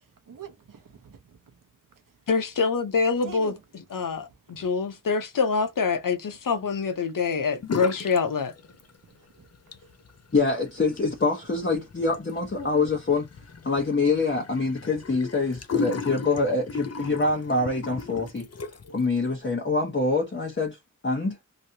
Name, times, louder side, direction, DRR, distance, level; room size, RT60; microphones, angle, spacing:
voice 1, 0.3-1.6 3.2-3.6 4.1-4.7 9.4-9.5 9.8-9.9, right 7 dB, 80° right, 0.9 m, -45 dB
voice 2, 2.3-3.5 3.9-8.5, left 5 dB, 80° left, 0.9 m, -25 dB
sound 1, 7.6-8.2 8.5-9.2 9.5-19.0, left 5 dB, 50° left, 0.6 m, -36 dB
voice 3, 10.3-13.3 13.6-18.5 18.9-20.8 21.0-21.4, left 3 dB, 35° left, 1.1 m, -25 dB
3.2 x 2.8 x 2.8 m
wide cardioid pair, 60°, 32 cm